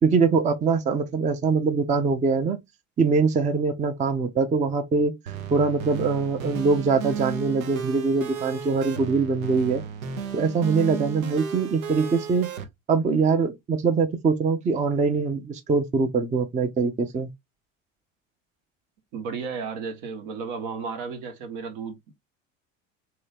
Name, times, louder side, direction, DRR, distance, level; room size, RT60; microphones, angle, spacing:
voice 1, 0.0-2.6 3.0-5.1 5.5-9.8 10.3-12.5 12.9-17.3, right 4 dB, 20° right, 0.5 m, -23 dB
sound 1, 5.3-12.6, right 6 dB, 80° right, 0.8 m, -34 dB
voice 2, 19.1-22.1, right 5 dB, 65° right, 1.1 m, -33 dB
2.8 x 2.7 x 3.3 m
hypercardioid pair, 75°, 40 cm